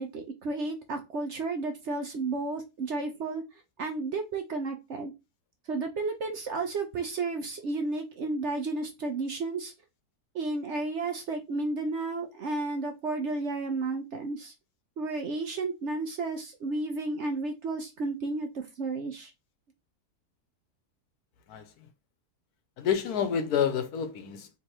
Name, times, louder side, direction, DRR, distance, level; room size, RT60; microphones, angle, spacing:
voice 1, 0.0-3.4 3.8-5.1 5.7-9.7 10.3-14.5 15.0-19.3, right 3 dB, 55° right, 0.9 m, -32 dB
voice 2, 21.5-21.9 22.8-24.5, left 8 dB, 70° left, 1.2 m, -29 dB
3.4 x 3.2 x 4.4 m
omnidirectional pair, 1.7 m